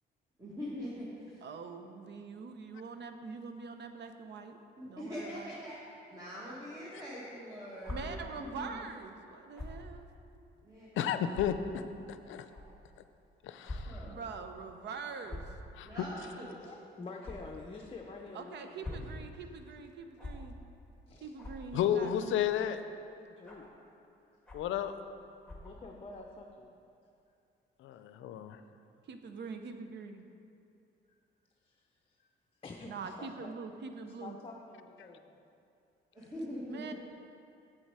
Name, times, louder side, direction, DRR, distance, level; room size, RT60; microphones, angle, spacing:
voice 1, 0.4-1.4 4.8-5.8 6.1-8.8 10.6-11.3 13.9-14.3 15.8-16.5 36.1-36.9, equal, 15° right, -8 dB, 1.8 m, -43 dB
voice 2, 1.4-4.6 4.8-5.5 7.9-10.1 14.0-15.4 18.3-20.6 21.2-22.5 29.1-30.2 32.9-34.4 36.7-36.9, right 5 dB, 60° right, 7 dB, 0.7 m, -44 dB
sound 1, 7.8-8.0 9.5-9.8 10.5-10.6 11.3-11.4 12.5-12.6 13.6-13.8 14.1-14.2 15.2-15.5 17.2-17.4 18.6-19.1 20.2-20.3 21.4-21.6 22.3-22.6 23.4-23.7 24.5-24.7 25.4-25.7, left 2 dB, 5° left, 1.7 m, -43 dB
voice 3, 11.0-11.8 12.3-12.4 13.4-14.0 15.8-15.9 21.7-22.8 24.5-24.9 27.8-28.6, left 9 dB, 75° left, 10 dB, 0.5 m, -32 dB
voice 4, 16.6-19.2 21.1-21.3 23.3-23.7 25.5-26.7 31.6-31.8 32.1-32.3 32.6-33.5 34.2-35.4, left 3 dB, 30° left, 1 dB, 0.7 m, -48 dB
7.8 x 7.4 x 4.8 m, 2.6 s
cardioid pair, 90°, 20 cm